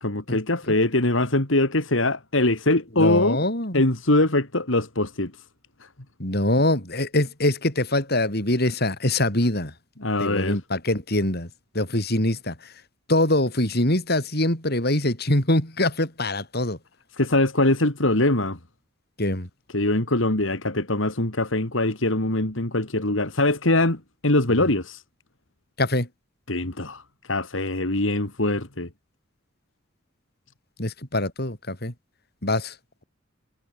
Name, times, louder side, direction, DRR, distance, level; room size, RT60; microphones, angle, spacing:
voice 1, 0.0-3.4 3.7-5.3 5.8-5.9 10.0-10.6 17.1-18.6 19.7-25.0 26.5-27.0 27.3-28.9, left 2 dB, 75° left, 3.3 m, -22 dB
voice 2, 3.0-3.9 6.2-9.7 10.2-11.5 11.7-12.6 13.1-16.8 19.2-19.5 25.8-26.1 30.8-31.9 32.4-32.7, left 1 dB, 55° left, 6.9 m, -23 dB
head